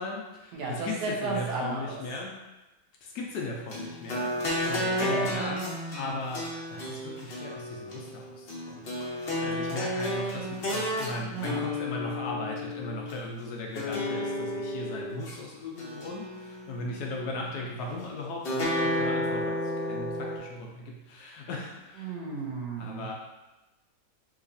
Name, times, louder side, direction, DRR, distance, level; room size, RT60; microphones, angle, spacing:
voice 1, 0.0-2.4 3.0-22.1 22.8-23.1, left 2 dB, 70° left, -1 dB, 1.1 m, -37 dB
voice 2, 0.5-2.0 5.0-5.3 11.3-11.6 22.0-23.1, right 3 dB, 75° right, -2 dB, 1.2 m, -33 dB
sound 1, 3.7-13.2 13.8-15.3 15.8-16.9 18.4-20.4, left 1 dB, 45° left, 0.8 m, -32 dB
3.8 x 2.8 x 2.6 m, 1.0 s
omnidirectional pair, 1.9 m